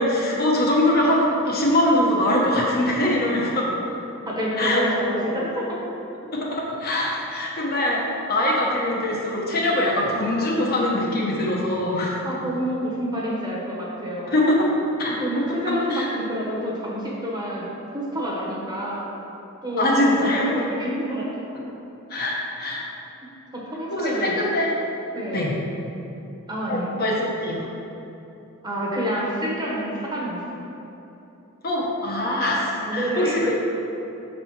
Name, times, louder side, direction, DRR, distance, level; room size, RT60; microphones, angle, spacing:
voice 1, 0.0-3.7 4.6-4.8 6.3-12.2 14.3-14.7 15.0-16.1 19.8-20.6 22.1-22.8 23.9-24.8 25.3-25.5 26.7-27.6 31.6-33.5, left 1 dB, 45° left, -3 dB, 1.1 m, -23 dB
voice 2, 4.2-5.8 12.2-14.4 15.1-19.1 19.6-19.9 20.2-21.2 23.5-24.4 25.1-25.6 26.5-27.0 28.6-30.7 32.8-33.4, equal, 20° right, -4 dB, 1.1 m, -28 dB
6.4 x 4.2 x 4.7 m, 3.0 s
head